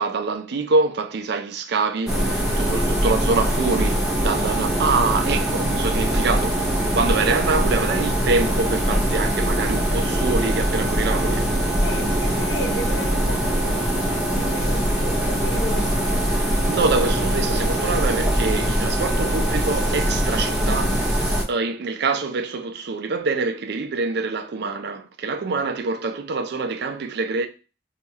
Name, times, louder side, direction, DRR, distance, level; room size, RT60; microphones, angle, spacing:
voice 1, 0.0-11.5 16.6-27.5, right 3 dB, 60° right, 0.4 m, -25 dB
sound 1, 2.1-21.4, equal, 5° right, 0.6 m, -22 dB
voice 2, 11.7-16.3, left 1 dB, 65° left, 0.6 m, -34 dB
2.8 x 2.3 x 4.2 m
head